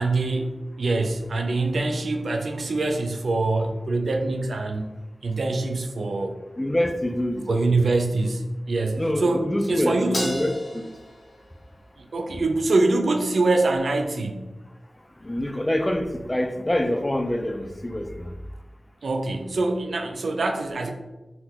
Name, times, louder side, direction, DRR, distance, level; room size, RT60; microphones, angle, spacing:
voice 1, 0.0-4.9 5.2-6.4 7.5-10.4 12.0-14.5 19.0-20.9, right 2 dB, 75° right, 5 dB, 0.3 m, -24 dB
voice 2, 6.6-7.8 9.0-10.9 15.2-18.3, left 1 dB, 20° left, 6 dB, 0.3 m, -26 dB
Crash cymbal, 10.1-12.7, equal, 60° left, 1.3 m, -34 dB
4.0 x 2.0 x 2.8 m, 1.1 s
wide cardioid pair, 95°, 0 cm